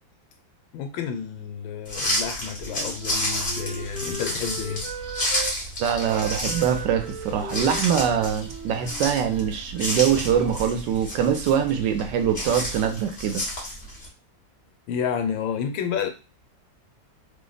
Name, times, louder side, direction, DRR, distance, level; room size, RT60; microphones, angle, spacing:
voice 1, 0.7-4.9 14.9-16.1, left 7 dB, 85° left, 1.4 m, -30 dB
sound 1, 1.8-14.1, equal, 40° left, 1.1 m, -31 dB
Wind instrument woodwind instrument, 2.6-5.6 6.0-9.9, right 4 dB, 45° right, 1.0 m, -38 dB
voice 2, 5.8-13.4, right 8 dB, 75° right, 1.2 m, -23 dB
3.2 x 2.0 x 3.9 m
omnidirectional pair, 2.1 m